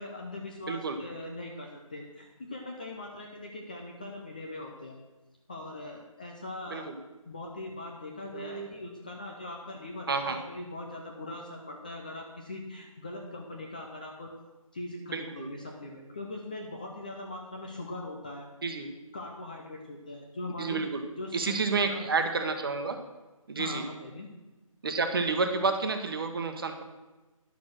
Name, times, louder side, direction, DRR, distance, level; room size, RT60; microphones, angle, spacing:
voice 1, 0.0-5.0 5.5-6.9 7.3-14.3 14.7-18.5 19.1-20.8 21.2-22.1 23.6-24.3, left 2 dB, 15° left, 0 dB, 0.5 m, -41 dB
voice 2, 0.7-1.0 6.7-6.9 8.3-8.7 10.1-10.4 15.1-15.5 18.6-18.9 20.6-21.0 21.3-23.0 23.5-23.8 24.8-26.8, right 4 dB, 40° right, 6 dB, 1.2 m, -30 dB
10.5 x 6.5 x 6.3 m, 1.1 s
figure-of-eight pair, 165°, 18 cm